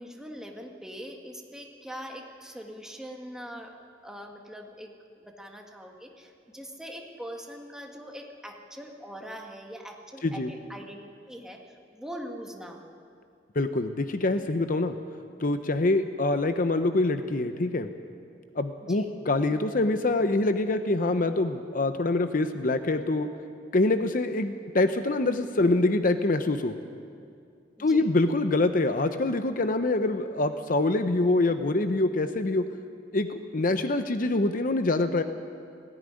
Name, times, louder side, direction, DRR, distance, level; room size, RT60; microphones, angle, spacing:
voice 1, 0.0-3.7 4.0-11.0 11.2-12.9 18.9-19.1 27.7-28.1, equal, 5° right, 1 dB, 1.8 m, -42 dB
voice 2, 13.6-15.0 15.4-17.9 18.6-23.3 23.7-26.8 27.8-32.6 33.1-35.2, left 2 dB, 50° left, 9 dB, 0.7 m, -25 dB
18.5 x 15.5 x 9.9 m, 2.4 s
head